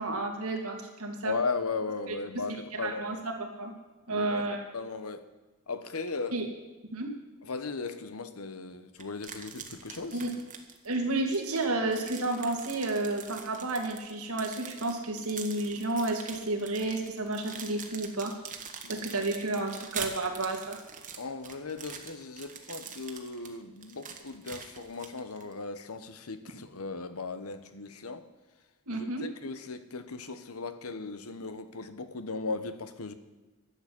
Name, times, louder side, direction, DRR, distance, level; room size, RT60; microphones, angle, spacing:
voice 1, 0.0-1.4 2.1-2.2 2.5-3.7 4.1-4.6 6.3-6.5 6.9-7.1 10.1-10.3 10.8-18.3 18.9-20.8 28.9-29.2, right 2 dB, 90° right, 2 dB, 2.5 m, -31 dB
voice 2, 1.2-3.2 4.1-4.5 4.7-5.2 5.7-6.4 7.4-10.2 18.8-19.1 21.2-28.3 28.9-33.1, left 4 dB, 90° left, 11 dB, 1.1 m, -37 dB
sound 1, 9.0-11.0 11.3-25.5, right 6 dB, 40° right, 1.5 m, -44 dB
11.5 x 7.6 x 9.6 m, 1.2 s
head